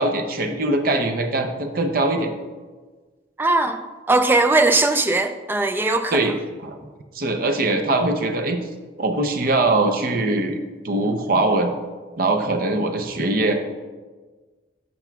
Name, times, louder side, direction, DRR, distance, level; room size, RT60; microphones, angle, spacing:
voice 1, 0.0-2.3 6.1-6.8 7.1-8.7 9.0-11.7 12.2-13.5, right 2 dB, 50° right, 5 dB, 0.6 m, -22 dB
voice 2, 3.4-3.8 4.1-6.3, right 2 dB, 10° right, 7 dB, 0.3 m, -19 dB
11.5 x 5.9 x 2.3 m, 1.4 s
head